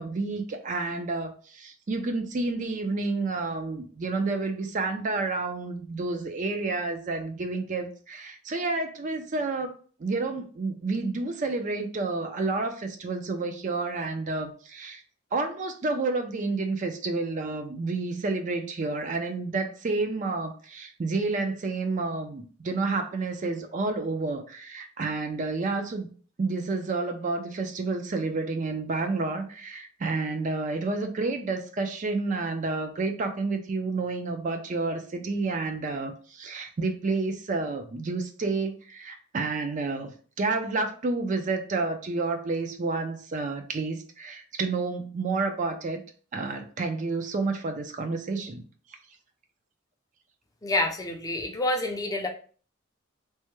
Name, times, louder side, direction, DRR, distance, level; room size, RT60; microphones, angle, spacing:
voice 1, 0.0-15.0 15.3-26.1 26.4-46.0 46.3-48.6, right 3 dB, 40° right, 6 dB, 0.4 m, -30 dB
voice 2, 50.6-52.3, left 2 dB, 20° left, 2 dB, 0.4 m, -28 dB
3.3 x 2.1 x 3.0 m, 0.41 s
head